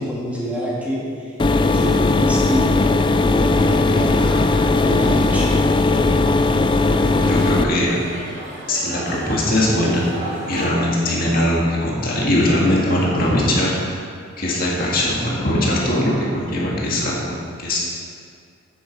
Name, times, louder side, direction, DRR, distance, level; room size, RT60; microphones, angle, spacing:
voice 1, 0.0-1.3 1.7-2.8 3.2-4.2 4.8-5.6, equal, 5° right, -7 dB, 1.8 m, -26 dB
sound 1, 1.4-7.6, left 3 dB, 25° left, 0.3 m, -17 dB
sound 2, 3.5-10.7, right 1 dB, 60° right, 2.5 m, -34 dB
voice 2, 7.2-8.0 8.7-10.1 10.5-14.0 14.4-17.2 17.6-17.8, left 1 dB, 45° left, -5 dB, 2.1 m, -20 dB
9.5 x 9.4 x 4.7 m, 2.3 s
head